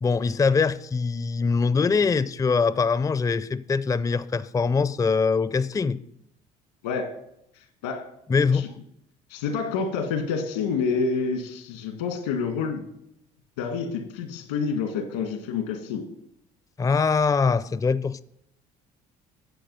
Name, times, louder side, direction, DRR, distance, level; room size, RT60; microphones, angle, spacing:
voice 1, 0.0-6.0 8.3-8.7 16.8-18.2, left 5 dB, 20° left, 0.4 m, -23 dB
voice 2, 6.8-7.2 7.5-8.1 8.5-8.7 9.3-12.8 13.6-16.1, left 5 dB, 90° left, 1.7 m, -28 dB
10.5 x 7.6 x 5.5 m
hypercardioid pair, 70°, 19 cm